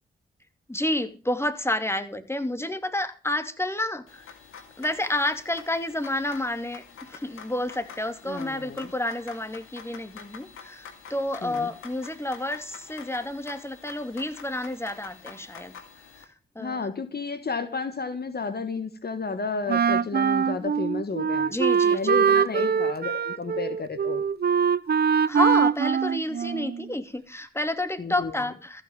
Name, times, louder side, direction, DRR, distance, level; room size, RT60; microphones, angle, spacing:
voice 1, 0.7-4.2 4.8-15.7 16.5-17.0 21.5-22.0 22.3-22.7 25.3-28.8, left 1 dB, 10° left, 9 dB, 2.7 m, -30 dB
sound 1, 4.1-16.2, left 6 dB, 90° left, 2.4 m, -47 dB
voice 2, 8.3-8.9 11.4-11.7 16.6-21.6 21.9-24.2 28.0-28.3, left 4 dB, 50° left, 10 dB, 1.6 m, -32 dB
Wind instrument woodwind instrument, 19.7-26.9, right 7 dB, 50° right, 0.7 m, -23 dB
14.5 x 6.4 x 9.1 m, 0.34 s
supercardioid pair, 45°, 21 cm